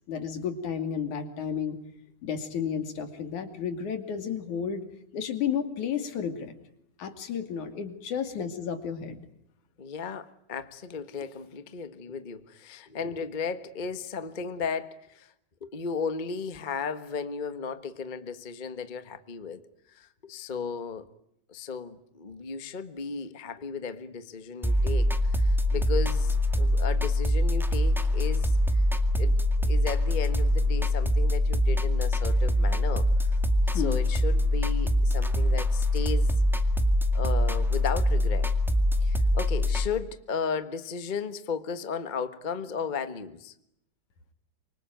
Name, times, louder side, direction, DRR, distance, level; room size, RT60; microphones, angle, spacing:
voice 1, 0.1-1.8 2.2-4.8 5.1-6.5 7.0-9.2 33.7-34.0, left 7 dB, 70° left, 8 dB, 3.9 m, -32 dB
voice 2, 9.8-15.3 15.6-19.6 19.9-21.0 21.5-28.8 29.2-33.1 33.7-36.3 37.1-38.5 39.0-43.5, left 5 dB, 90° left, 11 dB, 0.4 m, -35 dB
sound 1, 24.6-39.9, left 1 dB, ahead, 1.1 m, -24 dB
26.0 x 25.0 x 9.2 m, 0.78 s
omnidirectional pair, 3.6 m